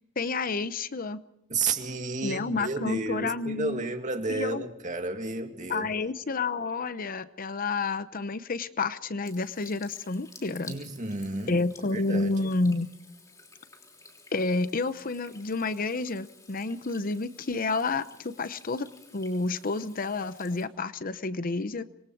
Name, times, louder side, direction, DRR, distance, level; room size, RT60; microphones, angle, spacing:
voice 1, 0.2-1.2 2.2-3.9 4.3-4.7 5.7-10.8 11.5-12.9 14.3-18.9 19.1-21.9, left 3 dB, 45° left, 13 dB, 0.8 m, -30 dB
voice 2, 1.5-5.9 10.7-11.5 11.9-12.5, right 3 dB, 40° right, 5 dB, 2.2 m, -32 dB
Water tap faucet / Sink (filling or washing), 9.2-20.7, left 3 dB, 20° left, 3.3 m, -53 dB
26.0 x 21.5 x 4.7 m, 0.74 s
head